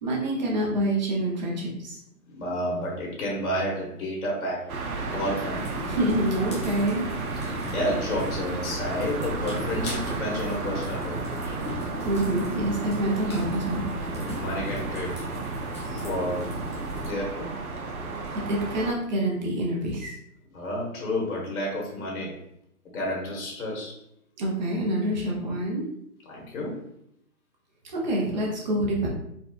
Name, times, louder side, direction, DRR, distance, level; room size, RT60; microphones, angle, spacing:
voice 1, 0.0-2.0 5.9-7.0 12.0-13.8 18.3-20.1 24.4-25.9 27.9-29.1, right 1 dB, 30° right, -2 dB, 0.7 m, -26 dB
voice 2, 2.3-5.7 7.4-11.6 14.2-15.2 15.8-16.5 16.9-17.6 20.5-22.4 22.8-24.0 26.2-26.8, left 1 dB, 70° left, -3 dB, 1.3 m, -31 dB
sound 1, 4.7-18.9, right 3 dB, 75° right, 0.8 m, -34 dB
sound 2, 5.5-17.1, equal, 20° left, 0.5 m, -36 dB
4.1 x 2.3 x 2.4 m, 0.75 s
hypercardioid pair, 145°, 44 cm